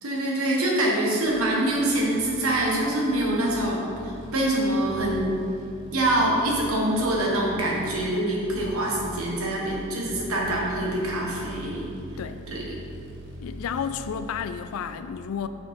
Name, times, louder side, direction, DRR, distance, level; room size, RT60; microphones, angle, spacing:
voice 1, 0.0-3.9 4.3-5.3 5.9-11.9 12.5-12.7, right 1 dB, 85° right, -2 dB, 1.2 m, -25 dB
sound 1, 1.2-14.9, right 1 dB, 55° right, 1.0 m, -43 dB
voice 2, 13.4-15.5, left 7 dB, 80° left, 12 dB, 0.3 m, -31 dB
6.2 x 4.2 x 4.6 m, 2.6 s
head